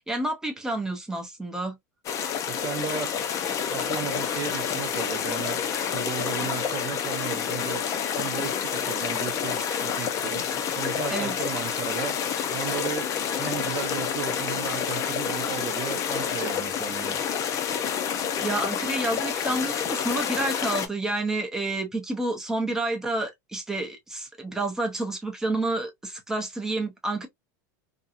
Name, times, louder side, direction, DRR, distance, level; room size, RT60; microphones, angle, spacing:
voice 1, 0.0-1.8 11.1-11.3 18.4-27.3, right 2 dB, 5° right, 0.8 m, -29 dB
sound 1, 2.0-20.9, left 8 dB, 35° left, 0.6 m, -28 dB
voice 2, 2.5-3.2 3.7-5.6 5.9-7.8 8.2-10.5 10.8-12.2 12.5-13.1 13.4-17.2, right 9 dB, 35° right, 0.7 m, -35 dB
2.8 x 2.3 x 2.4 m
supercardioid pair, 130°, 9 cm